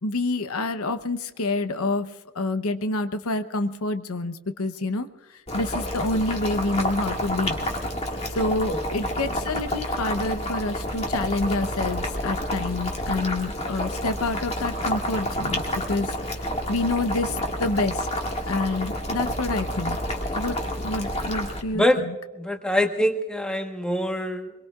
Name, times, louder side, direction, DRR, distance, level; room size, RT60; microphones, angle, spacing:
voice 1, 0.0-2.1 2.3-5.1 5.5-7.6 8.3-16.1 16.7-18.1 18.5-20.0 20.3-21.8, left 2 dB, 90° left, 10 dB, 0.9 m, -27 dB
Boiling, 5.5-21.6, equal, 30° left, 1.9 m, -29 dB
voice 2, 8.7-9.1 21.7-22.0 22.3-24.5, equal, 5° left, 4 dB, 1.2 m, -24 dB
24.0 x 22.5 x 2.4 m, 1.1 s
head